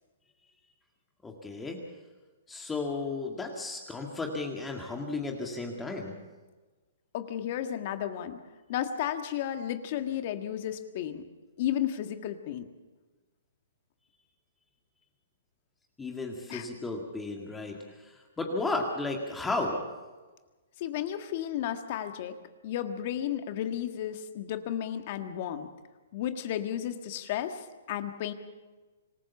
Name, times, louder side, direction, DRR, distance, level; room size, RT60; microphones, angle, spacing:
voice 1, 1.2-1.8 2.5-6.2 16.0-19.9, left 3 dB, 10° left, 1 dB, 2.0 m, -34 dB
voice 2, 7.1-8.4 8.7-11.3 11.6-12.7 16.5-16.7 20.8-22.3 22.6-25.7 26.1-28.3, left 10 dB, 45° left, 8 dB, 1.6 m, -33 dB
25.5 x 15.0 x 7.1 m, 1.3 s
hypercardioid pair, 145°, 0 cm